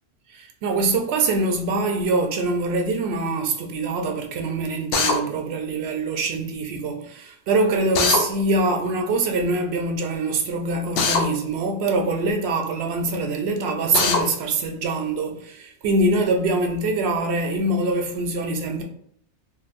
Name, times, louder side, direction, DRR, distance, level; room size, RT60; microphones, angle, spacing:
voice 1, 0.3-18.8, right 2 dB, 70° right, 0.8 m, -24 dB
Drill, 4.9-5.2 7.9-8.2 11.0-11.2 13.9-14.2, left 4 dB, 65° left, 0.7 m, -20 dB
3.8 x 2.3 x 2.4 m
omnidirectional pair, 1.2 m